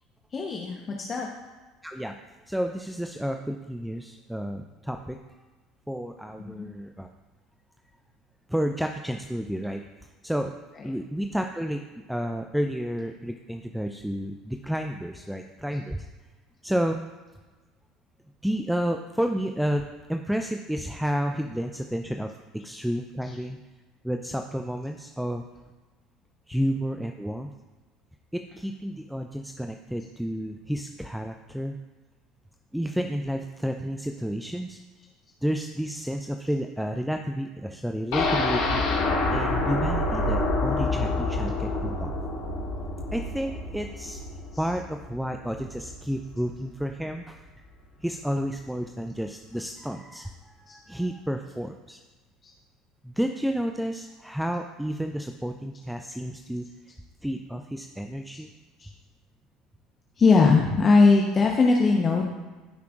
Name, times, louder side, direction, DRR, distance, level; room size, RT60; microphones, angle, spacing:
voice 1, 0.3-1.3 6.4-6.7 10.7-10.9 23.2-23.4 44.5-44.7 50.7-50.8 58.8-58.9 60.2-62.3, left 4 dB, 30° left, 0 dB, 1.0 m, -21 dB
voice 2, 1.8-2.2 2.5-5.4 5.9-7.1 8.5-9.8 10.2-10.5 10.8-11.8 12.1-16.0 16.6-17.1 18.4-23.6 24.0-25.4 26.5-27.5 28.3-31.8 32.7-34.8 35.4-38.8 39.3-42.1 43.1-44.2 44.6-47.4 48.0-52.0 53.0-56.7 57.2-58.5, equal, ahead, 5 dB, 0.6 m, -31 dB
sound 1, 38.1-46.0 46.3-46.4 46.8-46.9, left 2 dB, 60° left, 2.1 m, -27 dB
15.5 x 5.9 x 2.5 m, 1.3 s
figure-of-eight pair, 65°, 0 cm